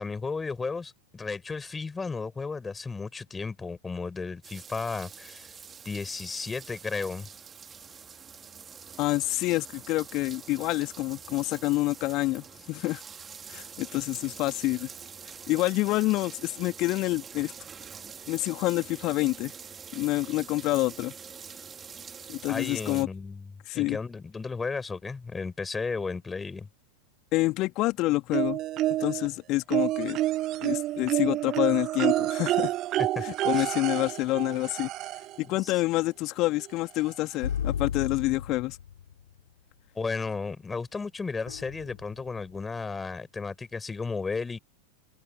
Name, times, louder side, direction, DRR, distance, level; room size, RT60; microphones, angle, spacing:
voice 1, 0.0-5.5 5.8-7.3 22.5-26.7 33.0-33.2 33.5-33.7 35.4-35.7 40.0-44.6, left 4 dB, 15° left, 5.7 m, -34 dB
sound 1, 4.4-23.0, right 6 dB, 20° right, 4.0 m, -45 dB
voice 2, 9.0-13.0 13.5-14.9 15.5-17.5 18.3-19.5 19.9-21.1 22.3-23.1 23.7-24.0 27.3-28.6 29.0-30.2 30.6-32.7 33.2-34.9 35.4-38.8, left 19 dB, 40° left, 2.8 m, -27 dB
sound 2, 28.3-29.3 29.7-35.4 36.6-36.7 37.1-37.2, right 15 dB, 35° right, 1.2 m, -28 dB
sound 3, 37.4-39.2 41.5-42.4, left 8 dB, 65° left, 5.8 m, -34 dB
figure-of-eight pair, 90°, 0 cm